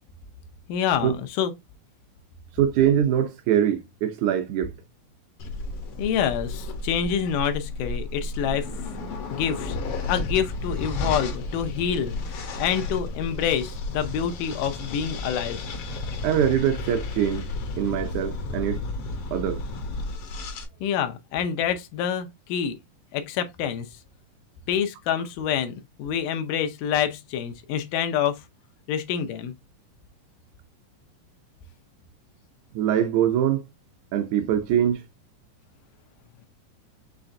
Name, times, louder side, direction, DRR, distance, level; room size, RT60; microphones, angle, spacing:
voice 1, 0.7-1.5 6.0-8.7 9.3-9.8 10.1-15.6 20.8-22.8 23.1-23.9 24.7-28.4 28.9-29.5, left 8 dB, 90° left, 2.4 m, -27 dB
voice 2, 2.6-4.7 16.2-17.5 17.8-18.8 19.3-19.6 32.7-33.6 34.1-35.0, right 10 dB, 75° right, 1.9 m, -23 dB
sound 1, 5.4-20.7, left 2 dB, 75° left, 1.3 m, -32 dB
5.8 x 3.2 x 2.6 m
omnidirectional pair, 3.7 m